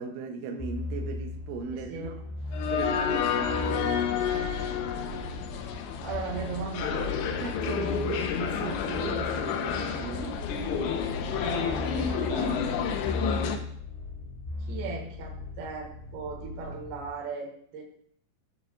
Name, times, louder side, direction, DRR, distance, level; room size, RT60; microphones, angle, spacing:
voice 1, 0.0-2.1 2.7-3.9 7.2-10.5, right 5 dB, 85° right, 3 dB, 3.1 m, -37 dB
sound 1, 0.6-17.1, left 2 dB, 25° left, 0.9 m, -38 dB
voice 2, 1.7-2.2 6.0-7.1 11.4-12.6 14.7-17.8, right 4 dB, 65° right, 0 dB, 3.2 m, -37 dB
sound 2, 2.5-13.6, left 7 dB, 80° left, 3.0 m, -30 dB
16.5 x 5.7 x 2.3 m, 0.63 s
omnidirectional pair, 5.4 m